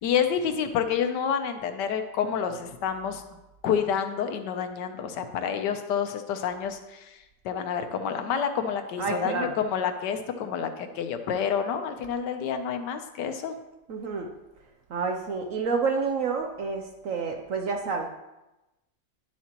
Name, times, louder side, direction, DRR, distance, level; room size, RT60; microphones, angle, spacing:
voice 1, 0.0-3.2 3.6-7.2 7.4-13.5, left 7 dB, 70° left, 7 dB, 1.3 m, -28 dB
voice 2, 9.0-9.5 13.9-14.3 14.9-18.1, right 4 dB, 65° right, 3 dB, 0.8 m, -29 dB
10.5 x 7.2 x 2.9 m, 1.0 s
omnidirectional pair, 2.0 m